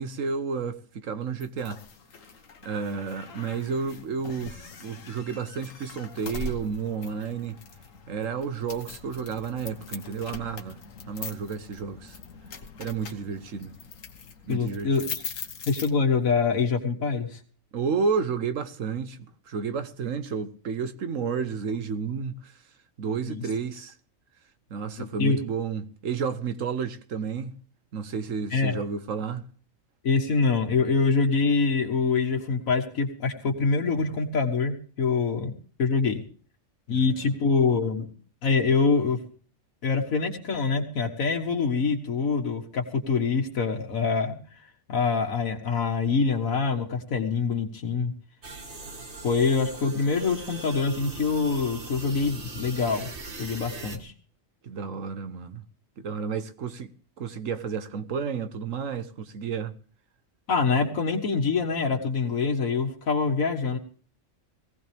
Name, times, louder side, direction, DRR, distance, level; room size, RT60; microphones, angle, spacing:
voice 1, 0.0-1.8 2.6-7.6 8.1-10.8 11.1-12.2 12.8-13.8 14.5-15.1 17.7-19.2 19.5-22.5 23.0-23.9 24.7-27.6 27.9-29.4 36.9-37.3 54.6-55.6 56.0-56.9 57.2-59.7, right 6 dB, 70° right, 1.4 m, -31 dB
sound 1, 1.4-16.4, left 4 dB, 70° left, 1.6 m, -42 dB
voice 2, 14.5-15.1 15.7-17.4 23.3-23.4 25.0-25.4 28.5-28.8 30.0-35.5 35.8-36.2 36.9-38.1 38.4-39.2 39.8-44.4 44.9-48.1 49.2-53.1 53.4-54.1 60.5-63.8, left 4 dB, 90° left, 1.9 m, -25 dB
sound 2, 48.4-54.0, right 2 dB, 55° right, 2.2 m, -40 dB
18.5 x 16.0 x 3.5 m
omnidirectional pair, 1.4 m